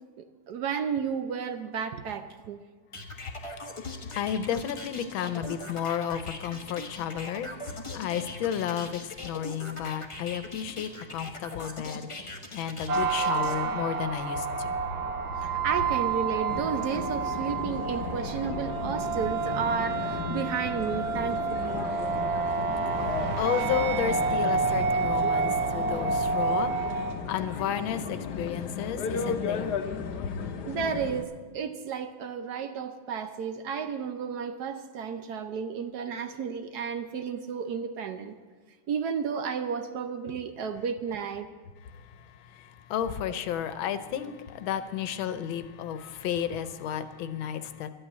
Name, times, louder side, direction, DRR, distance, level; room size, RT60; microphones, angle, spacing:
voice 1, 0.2-2.6 13.1-13.9 15.4-21.9 30.6-38.4 38.9-41.5, right 6 dB, 65° right, 1.1 m, -33 dB
sound 1, 2.9-13.6, left 2 dB, 20° left, 0.9 m, -41 dB
voice 2, 3.0-14.8 22.4-30.6 41.8-47.9, left 9 dB, 90° left, 1.5 m, -33 dB
sound 2, 12.9-27.1, right 5 dB, 85° right, 2.1 m, -29 dB
sound 3, 16.5-31.2, left 6 dB, 65° left, 1.4 m, -35 dB
12.0 x 8.9 x 8.4 m
omnidirectional pair, 2.1 m